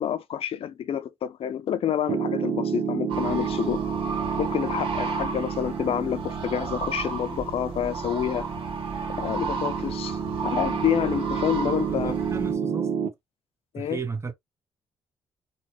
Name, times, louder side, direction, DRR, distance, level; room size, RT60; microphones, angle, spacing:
voice 1, 0.0-3.8 4.4-8.5 9.2-12.1 13.7-14.0, left 9 dB, 60° left, 0.6 m, -28 dB
Piano, 2.1-13.1, right 7 dB, 70° right, 0.8 m, -30 dB
sound 1, 3.1-12.5, right 4 dB, 55° right, 1.8 m, -33 dB
voice 2, 11.9-12.9 13.8-14.3, right 5 dB, 25° right, 0.9 m, -34 dB
4.1 x 2.3 x 2.9 m
hypercardioid pair, 50°, 11 cm